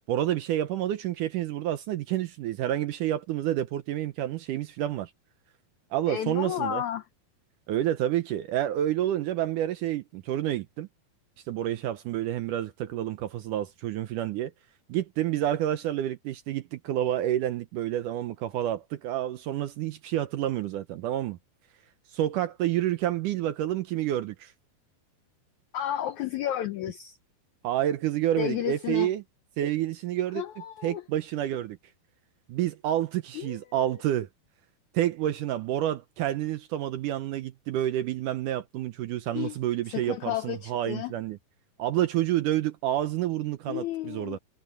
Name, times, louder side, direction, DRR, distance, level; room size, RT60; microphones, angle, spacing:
voice 1, 0.1-5.1 5.9-6.8 7.7-10.9 11.5-14.5 14.9-21.4 22.1-24.5 27.6-29.2 29.6-30.4 30.8-31.8 32.5-34.3 34.9-41.4 41.8-44.4, right 12 dB, 75° right, 2.0 m, -29 dB
voice 2, 6.1-7.0 25.7-27.2 28.4-29.1 30.3-31.0 33.3-33.9 39.3-39.6 39.9-41.1 43.7-44.4, left 11 dB, 85° left, 1.6 m, -32 dB
omnidirectional pair, 4.4 m